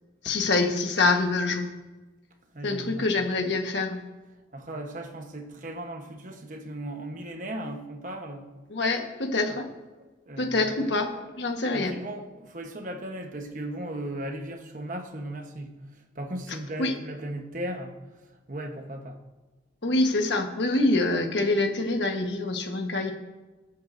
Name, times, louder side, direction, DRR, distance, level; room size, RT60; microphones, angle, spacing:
voice 1, 0.2-1.7 2.6-4.0 8.7-9.7 10.4-11.1 11.4-12.0 16.8-16.9 19.8-23.1, left 2 dB, 75° left, 4 dB, 1.4 m, -25 dB
voice 2, 2.5-3.1 4.5-8.5 10.0-11.3 11.7-15.9 16.1-18.0 18.5-19.2, right 1 dB, 45° right, 4 dB, 1.1 m, -37 dB
20.0 x 8.6 x 2.7 m, 1.2 s
head